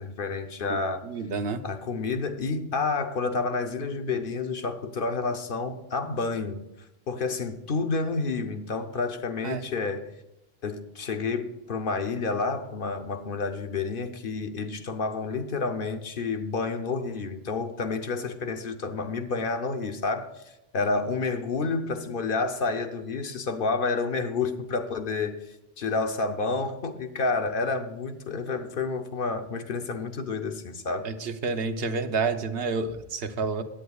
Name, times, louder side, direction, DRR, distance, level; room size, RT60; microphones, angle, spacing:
voice 1, 0.0-1.1 1.6-6.6 7.1-10.1 10.6-31.1, left 4 dB, 60° left, 0.9 m, -29 dB
voice 2, 0.7-1.6 9.4-9.6 31.0-33.6, right 4 dB, 70° right, 1.0 m, -29 dB
16.5 x 10.0 x 2.3 m
omnidirectional pair, 1.1 m